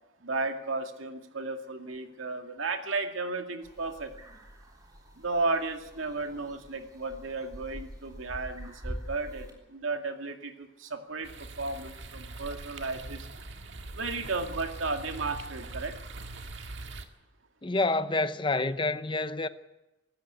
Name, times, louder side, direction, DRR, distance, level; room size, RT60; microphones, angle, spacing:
voice 1, 0.2-4.1 5.2-13.3 13.9-16.0, right 3 dB, 85° right, 2.2 m, -34 dB
sound 1, 3.6-9.5, equal, 20° right, 3.5 m, -45 dB
sound 2, 11.2-17.1, right 2 dB, 65° right, 1.8 m, -42 dB
voice 2, 17.6-19.5, left 2 dB, 25° left, 0.8 m, -28 dB
24.5 x 13.0 x 8.3 m
head